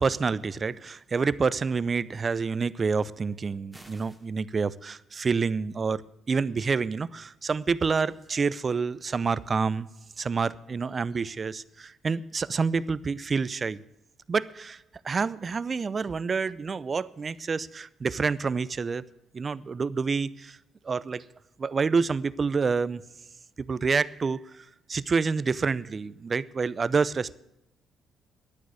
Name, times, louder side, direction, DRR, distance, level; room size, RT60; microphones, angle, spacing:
voice 1, 0.0-6.0 6.3-9.9 10.2-13.8 14.3-14.8 15.0-19.0 19.3-20.6 20.8-21.2 21.6-23.0 23.6-24.4 24.9-27.3, right 5 dB, 40° right, 0.6 m, -28 dB
sound 1, 3.7-4.3, right 1 dB, 5° right, 2.3 m, -51 dB
12.0 x 9.4 x 8.1 m
supercardioid pair, 60°, 0 cm